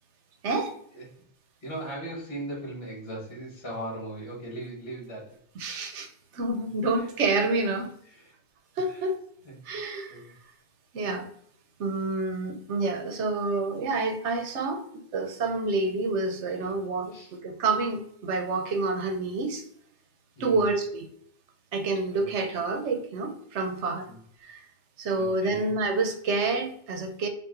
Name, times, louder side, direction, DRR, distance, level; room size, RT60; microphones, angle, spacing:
voice 1, 0.4-0.7 5.6-7.9 8.8-9.2 9.7-10.2 10.9-11.3 11.8-14.8 15.1-19.6 20.4-21.1 21.7-24.1 24.4-24.6 25.0-27.3, right 3 dB, 70° right, 6 dB, 1.0 m, -28 dB
voice 2, 1.6-5.4 6.8-7.1 8.0-8.3 8.9-9.0 9.4-9.5 10.1-10.3 16.6-16.7 17.1-17.3 20.4-20.7 22.2-22.3 24.0-24.2 25.2-25.7, right 1 dB, 55° left, -3 dB, 1.7 m, -39 dB
5.4 x 2.6 x 2.5 m, 0.66 s
omnidirectional pair, 1.2 m